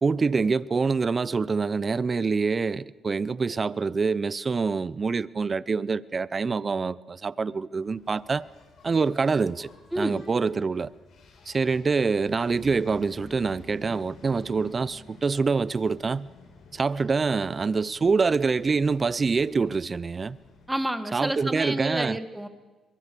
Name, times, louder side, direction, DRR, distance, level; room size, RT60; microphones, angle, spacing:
voice 1, 0.0-8.4 8.8-9.7 10.0-10.9 11.5-16.3 16.7-20.4 21.1-22.2, right 4 dB, 35° right, 0.6 m, -25 dB
Engine, 7.8-20.8, left 3 dB, 65° left, 4.9 m, -51 dB
voice 2, 9.9-10.2 20.7-22.5, right 1 dB, 5° right, 1.7 m, -29 dB
22.5 x 22.5 x 6.9 m
cardioid pair, 90°, 0 cm